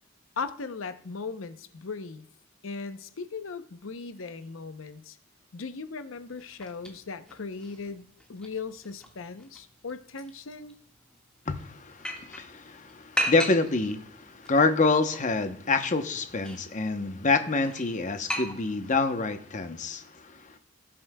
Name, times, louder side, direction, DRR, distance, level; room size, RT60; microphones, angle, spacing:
voice 1, 0.4-2.2 2.6-5.2 5.5-8.0 8.3-10.7, left 4 dB, 80° left, 0.7 m, -38 dB
sound 1, 6.1-19.1, equal, 5° left, 1.6 m, -39 dB
voice 2, 11.5-20.6, left 3 dB, 40° left, 0.8 m, -27 dB
18.0 x 7.5 x 2.2 m
head